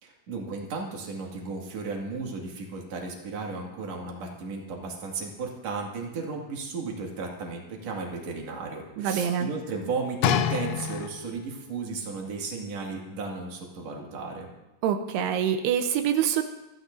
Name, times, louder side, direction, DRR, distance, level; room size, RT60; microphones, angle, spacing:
voice 1, 0.0-14.5, right 4 dB, 45° right, 0 dB, 2.9 m, -35 dB
voice 2, 9.0-9.5 14.8-16.4, right 9 dB, 90° right, 7 dB, 2.8 m, -25 dB
sound 1, 10.2-11.5 12.3-12.4, left 9 dB, 90° left, 2.8 m, -27 dB
28.0 x 11.5 x 2.7 m, 1.0 s
omnidirectional pair, 4.8 m